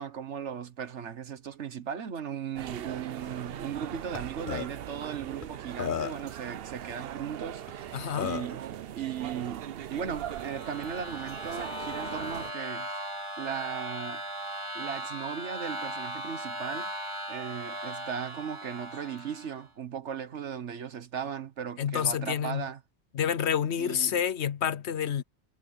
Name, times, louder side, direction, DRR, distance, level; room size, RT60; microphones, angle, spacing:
voice 1, 0.0-8.6 9.0-13.1 13.4-14.2 14.7-22.8 23.8-24.2, right 8 dB, 80° right, 1.4 m, -37 dB
sound 1, 2.6-12.5, right 10 dB, 65° right, 0.8 m, -40 dB
Burping eructation, 4.1-4.2 4.5-4.7 5.4-5.5 5.8-6.3 7.7-7.8 8.2-8.5, left 8 dB, 55° left, 0.8 m, -32 dB
voice 2, 7.9-8.4 21.8-22.7 23.1-25.2, left 8 dB, 70° left, 1.1 m, -28 dB
sound 2, 10.0-19.7, right 1 dB, 25° right, 3.5 m, -38 dB
omnidirectional pair, 1.2 m